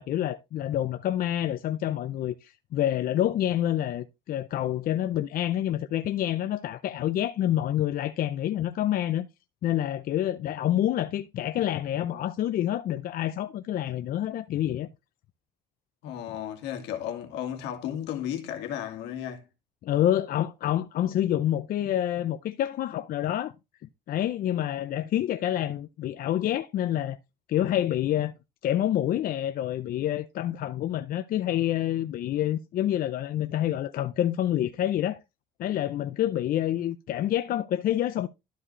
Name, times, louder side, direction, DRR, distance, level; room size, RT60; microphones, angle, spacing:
voice 1, 0.0-9.3 9.6-14.9 19.8-23.5 24.1-27.2 27.5-28.3 28.6-35.2 35.6-38.3, left 12 dB, 60° left, 0.6 m, -27 dB
voice 2, 16.0-19.4, left 10 dB, 90° left, 1.9 m, -34 dB
12.5 x 4.9 x 3.1 m
cardioid pair, 110°, 17 cm